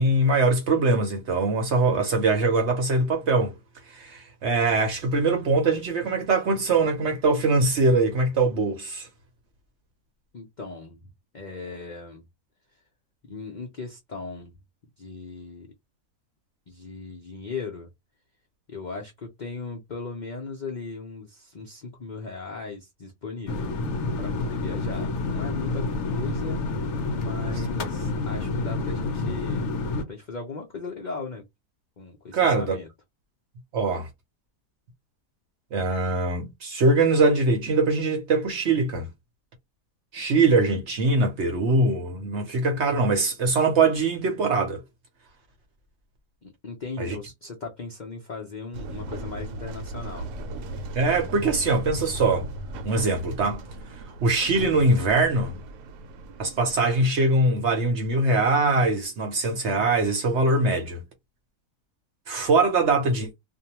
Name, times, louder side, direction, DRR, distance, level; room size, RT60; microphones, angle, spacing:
voice 1, 0.0-3.5 3.9-9.1 32.3-32.8 33.7-34.1 35.7-39.1 40.1-44.8 47.0-47.2 51.0-52.5 52.8-53.7 54.2-55.6 56.4-61.0 62.3-63.3, right 3 dB, 55° right, 0.9 m, -22 dB
voice 2, 10.3-11.0 11.3-12.3 13.2-14.5 15.0-15.7 16.7-17.9 18.7-23.7 24.2-26.6 27.1-29.7 30.1-31.5 32.0-32.9 46.4-50.3, left 4 dB, 80° left, 0.4 m, -37 dB
sound 1, 23.5-30.0, left 3 dB, 65° left, 0.7 m, -28 dB
sound 2, 48.7-56.8, right 1 dB, 80° right, 1.1 m, -37 dB
2.6 x 2.2 x 2.8 m
omnidirectional pair, 1.7 m